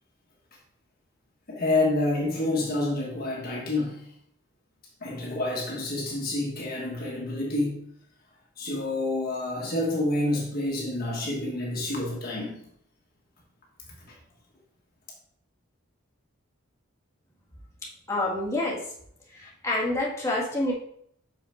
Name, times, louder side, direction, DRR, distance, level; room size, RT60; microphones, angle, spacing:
voice 1, 1.5-4.1 5.0-7.8 8.6-12.7 14.1-14.2, left 2 dB, 45° left, -2 dB, 1.5 m, -28 dB
voice 2, 17.8-18.8 19.3-20.7, left 1 dB, 15° left, -5 dB, 1.8 m, -28 dB
6.3 x 5.7 x 4.5 m, 0.69 s
head